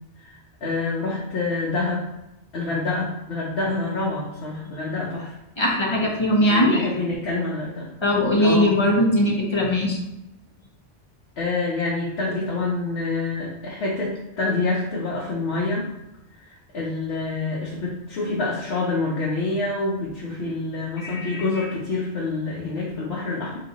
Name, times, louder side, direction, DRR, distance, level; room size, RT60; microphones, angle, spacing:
voice 1, 0.2-2.1 2.5-5.3 6.5-7.9 8.4-8.8 11.4-15.9 16.3-23.6, left 3 dB, 65° left, -5 dB, 1.0 m, -27 dB
voice 2, 5.6-6.9 8.0-10.0 21.0-21.4, left 1 dB, 30° left, -2 dB, 0.6 m, -20 dB
3.9 x 2.4 x 3.9 m, 0.90 s
omnidirectional pair, 1.2 m